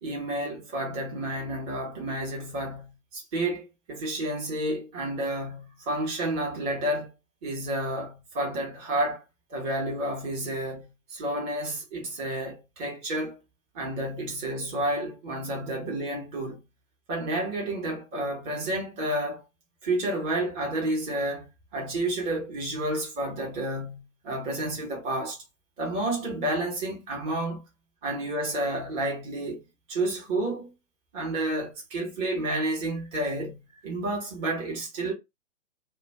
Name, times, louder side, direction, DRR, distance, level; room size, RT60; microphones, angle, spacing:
voice 1, 0.0-7.1 7.4-9.2 9.5-13.4 13.7-16.6 17.1-19.4 19.8-25.4 25.8-27.6 28.0-29.6 29.9-30.7 31.1-35.1, right 1 dB, 20° right, 0.9 m, -30 dB
2.4 x 2.2 x 3.3 m
figure-of-eight pair, 130°, 39 cm